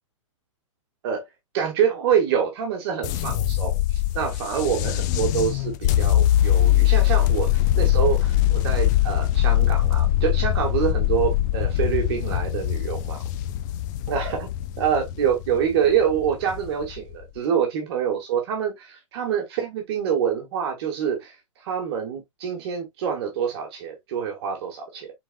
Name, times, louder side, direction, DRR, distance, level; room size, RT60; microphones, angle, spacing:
voice 1, 1.5-13.2 14.1-14.5 14.8-21.3 21.6-25.1, right 8 dB, 50° right, 1.6 m, -26 dB
sound 1, 3.0-17.2, left 13 dB, 35° left, 0.4 m, -22 dB
4.6 x 4.0 x 2.2 m
hypercardioid pair, 150°, 17 cm